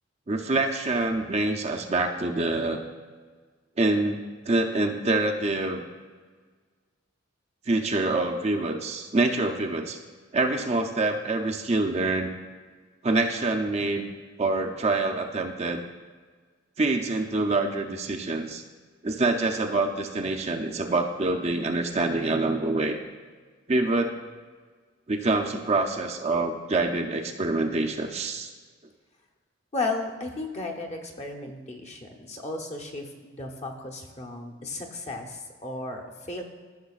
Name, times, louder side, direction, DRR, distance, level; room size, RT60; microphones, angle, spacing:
voice 1, 0.3-2.8 3.8-5.8 7.7-10.0 10.3-12.3 13.0-14.1 14.4-15.9 16.8-18.6 19.0-23.0 23.7-24.1 25.1-28.5, right 2 dB, 35° right, 4 dB, 0.6 m, -26 dB
voice 2, 29.7-36.4, left 2 dB, 35° left, 2 dB, 0.9 m, -34 dB
14.0 x 6.1 x 2.4 m, 1.5 s
head